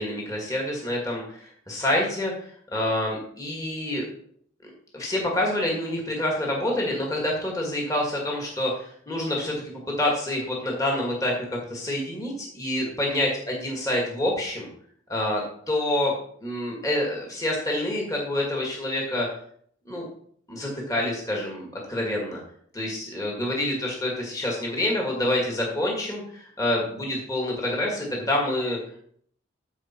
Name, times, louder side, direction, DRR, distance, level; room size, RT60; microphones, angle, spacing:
voice 1, 0.0-4.1 4.9-9.6 10.0-14.7 15.1-16.1 16.4-19.3 19.9-20.1 20.5-22.4 22.7-29.0, left 1 dB, 15° left, -2 dB, 1.9 m, -27 dB
14.0 x 4.9 x 4.4 m, 0.62 s
head